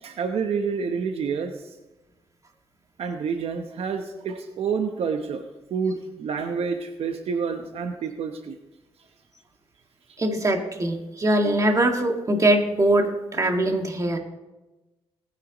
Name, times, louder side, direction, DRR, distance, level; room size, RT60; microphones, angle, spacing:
voice 1, 0.0-1.6 3.0-5.4 5.7-8.6, right 5 dB, 70° right, 6 dB, 0.9 m, -28 dB
voice 2, 10.2-14.2, right 1 dB, 30° right, 3 dB, 1.9 m, -22 dB
19.0 x 10.0 x 3.0 m, 1.1 s
cardioid pair, 90°, 10 cm